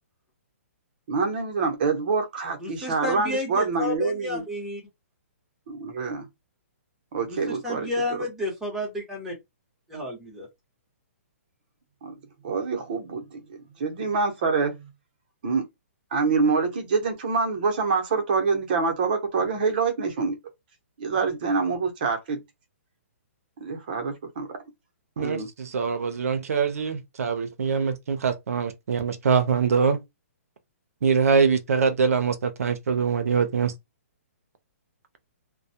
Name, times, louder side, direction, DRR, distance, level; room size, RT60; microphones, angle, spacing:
voice 1, 1.1-4.4 5.7-6.3 7.1-7.9 12.0-12.1 12.4-14.9 15.4-15.6 16.1-20.4 21.0-22.4 23.6-24.6 25.2-25.5, right 4 dB, 35° right, 0.7 m, -26 dB
voice 2, 2.6-4.8 7.3-7.4 7.6-9.3 9.9-10.5, left 2 dB, 5° right, 0.8 m, -31 dB
voice 3, 25.2-30.0 31.0-33.7, right 5 dB, 75° right, 0.5 m, -23 dB
2.2 x 2.1 x 2.7 m
hypercardioid pair, 170°, 8 cm